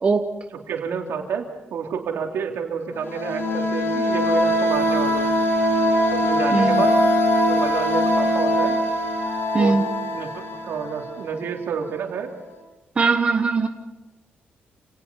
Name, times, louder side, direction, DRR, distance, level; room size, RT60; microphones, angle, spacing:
voice 1, 0.7-1.5 1.7-5.3 6.2-7.0 7.4-8.8 9.5-9.8 10.1-12.3, right 6 dB, 75° right, 2 dB, 3.4 m, -29 dB
sound 1, 3.0-11.6, equal, 70° left, 5.1 m, -22 dB
voice 2, 6.5-6.8 9.5-9.8 13.0-13.7, right 4 dB, 30° right, 5 dB, 1.1 m, -20 dB
29.0 x 18.5 x 5.6 m, 1.1 s
cardioid pair, 140°, 4 cm